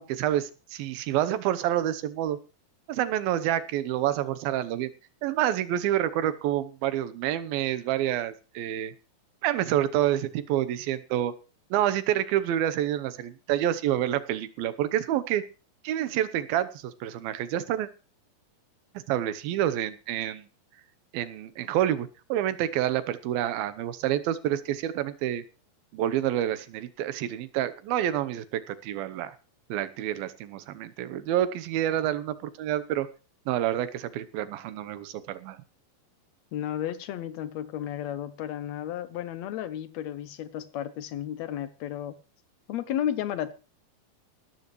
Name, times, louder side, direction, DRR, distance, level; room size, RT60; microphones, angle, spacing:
voice 1, 0.0-2.4 2.9-4.9 5.2-8.9 9.4-11.3 11.7-15.4 15.8-17.9 19.1-20.5 21.1-25.4 25.9-29.4 29.7-33.1 33.5-35.6, right 12 dB, 85° right, 2.8 m, -28 dB
voice 2, 36.5-42.2 42.7-43.5, left 11 dB, 85° left, 1.5 m, -33 dB
17.5 x 13.5 x 3.1 m
omnidirectional pair, 4.1 m